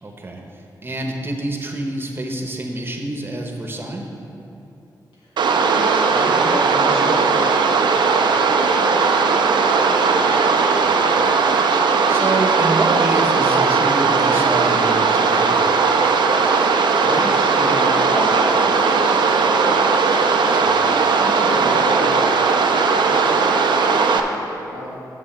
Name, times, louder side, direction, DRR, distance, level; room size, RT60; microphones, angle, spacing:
voice 1, 0.0-4.1 10.8-11.3 12.1-15.7 20.5-20.8, right 2 dB, 30° right, 2 dB, 1.0 m, -27 dB
voice 2, 5.2-10.5 17.0-20.2 21.0-25.0, left 1 dB, 90° left, -5 dB, 1.9 m, -32 dB
sound 1, 5.4-24.2, right 4 dB, 80° right, 0.5 m, -17 dB
9.1 x 6.6 x 4.4 m, 2.9 s
cardioid pair, 75°, 8 cm